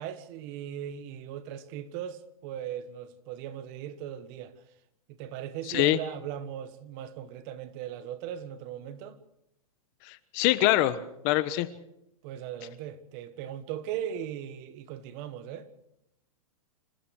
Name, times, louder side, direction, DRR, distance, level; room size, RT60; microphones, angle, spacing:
voice 1, 0.0-4.5 5.1-9.2 12.2-15.7, right 10 dB, 40° right, 1.5 m, -38 dB
voice 2, 5.7-6.0 10.1-11.0 11.2-11.7, left 16 dB, 40° left, 1.2 m, -24 dB
27.0 x 15.0 x 6.6 m
hypercardioid pair, 150°, 18 cm